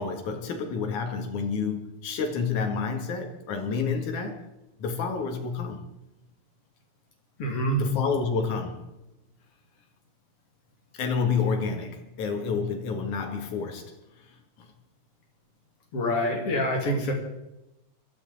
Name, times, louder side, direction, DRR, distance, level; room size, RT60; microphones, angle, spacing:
voice 1, 0.0-4.4 4.8-5.8 7.8-8.8 11.0-13.9 14.6-14.7, left 5 dB, 70° left, 3.1 m, -29 dB
voice 2, 7.4-7.8 15.9-17.1, equal, 50° left, 3.1 m, -26 dB
21.0 x 13.5 x 4.0 m
omnidirectional pair, 3.6 m